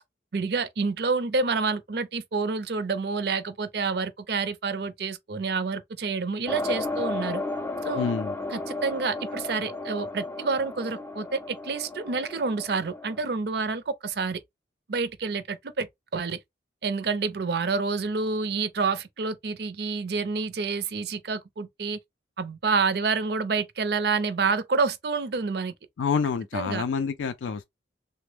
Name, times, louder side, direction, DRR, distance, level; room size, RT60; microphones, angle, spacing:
voice 1, 0.3-7.4 7.8-8.1 8.5-14.4 14.9-16.4 16.8-22.0 22.4-25.7 26.5-26.8, right 4 dB, 60° right, 0.5 m, -28 dB
sound 1, 6.5-13.2, left 2 dB, 10° left, 0.4 m, -33 dB
voice 2, 8.0-8.3 26.0-27.6, left 5 dB, 90° left, 0.4 m, -27 dB
3.3 x 2.0 x 3.3 m
head